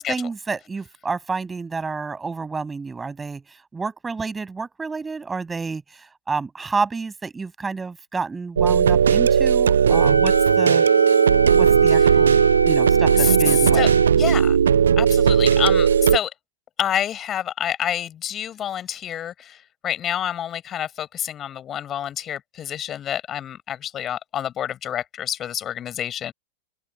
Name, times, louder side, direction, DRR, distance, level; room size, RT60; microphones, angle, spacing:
voice 1, 0.0-3.4 3.7-5.8 6.3-10.8 11.5-12.3 12.6-13.9, right 4 dB, 15° right, 6.7 m, -29 dB
sound 1, 8.6-16.2, right 7 dB, 70° right, 0.9 m, -17 dB
Wind instrument woodwind instrument, 9.9-14.1, right 1 dB, 85° right, 2.9 m, -26 dB
voice 2, 13.1-14.6 15.0-16.3 16.8-19.6 19.8-26.3, left 10 dB, 25° left, 6.3 m, -28 dB
open air
figure-of-eight pair, 90°, 0 cm